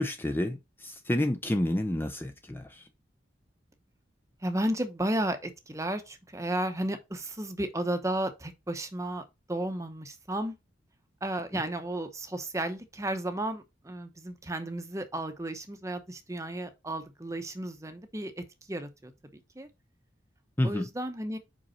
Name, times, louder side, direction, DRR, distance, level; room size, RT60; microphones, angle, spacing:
voice 1, 0.0-2.9 20.6-20.9, left 1 dB, 10° left, 0.5 m, -29 dB
voice 2, 4.4-10.5 11.2-19.1 19.6-19.7 20.6-21.4, right 1 dB, 15° right, 0.9 m, -33 dB
5.4 x 5.2 x 4.2 m
head